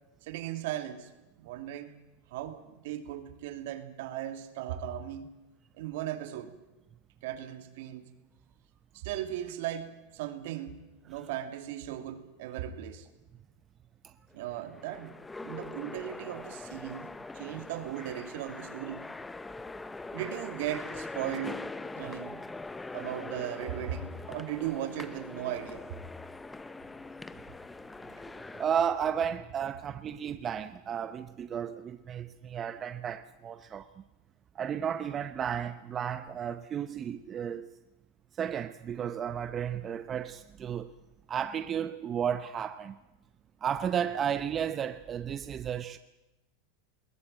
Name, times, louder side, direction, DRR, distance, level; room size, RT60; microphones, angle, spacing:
voice 1, 0.2-1.1 1.4-1.9 2.3-5.3 5.8-6.5 7.2-8.1 8.9-13.1 14.3-19.1 20.1-21.7 21.9-22.4 22.9-25.8, right 11 dB, 70° right, 2.6 m, -37 dB
sound 1, 14.3-28.6, left 3 dB, 10° left, 0.7 m, -42 dB
voice 2, 28.2-33.9 34.5-37.7 38.4-40.9 41.3-43.0 43.6-46.0, right 8 dB, 25° right, 0.8 m, -33 dB
21.0 x 18.0 x 9.0 m
supercardioid pair, 140°, 0 cm